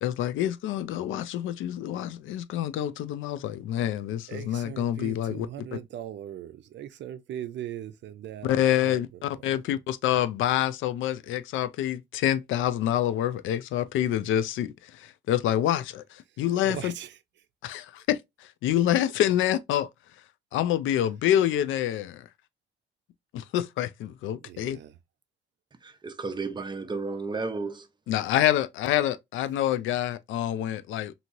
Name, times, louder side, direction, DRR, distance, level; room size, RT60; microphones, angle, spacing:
voice 1, 0.0-5.5 8.4-16.9 17.6-19.9 20.5-22.3 23.3-24.8 28.1-31.1, left 11 dB, 80° left, 0.4 m, -27 dB
voice 2, 4.3-9.0 16.6-17.1 24.4-24.9, right 11 dB, 65° right, 0.5 m, -39 dB
voice 3, 25.8-27.9, right 4 dB, 20° right, 0.6 m, -33 dB
2.9 x 2.7 x 2.6 m
cardioid pair, 90°, 20 cm